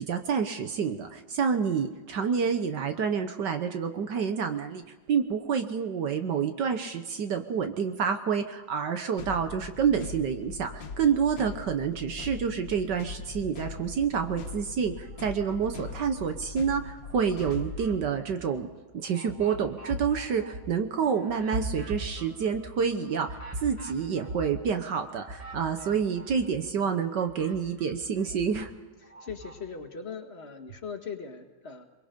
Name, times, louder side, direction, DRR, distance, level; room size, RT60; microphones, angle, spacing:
voice 1, 0.1-4.8 5.1-18.7 18.9-28.7, right 6 dB, 70° right, 7 dB, 1.6 m, -28 dB
sound 1, 9.2-17.9, left 4 dB, 75° left, 2.0 m, -41 dB
sound 2, 13.8-14.6 15.0-16.6 17.0-26.7 27.0-29.6, right 1 dB, 20° right, 4.9 m, -41 dB
voice 2, 29.0-31.9, left 5 dB, 35° left, 3 dB, 1.9 m, -40 dB
23.5 x 23.0 x 5.2 m, 1.3 s
omnidirectional pair, 2.0 m